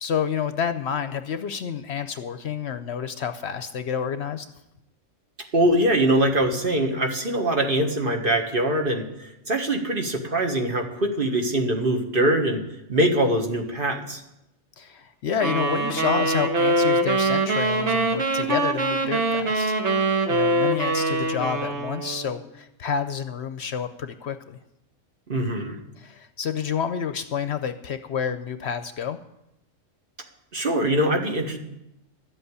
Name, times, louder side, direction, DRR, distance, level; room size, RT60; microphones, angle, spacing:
voice 1, 0.0-4.5 14.8-20.0 20.3-24.6 26.0-29.2, left 7 dB, 60° left, 10 dB, 0.9 m, -29 dB
voice 2, 5.5-12.6 12.9-14.2 25.3-25.8 30.5-31.6, right 1 dB, 45° right, 3 dB, 1.6 m, -23 dB
sound 1, 15.4-22.4, right 2 dB, 60° right, 1.6 m, -23 dB
12.5 x 8.0 x 8.2 m, 0.87 s
omnidirectional pair, 1.4 m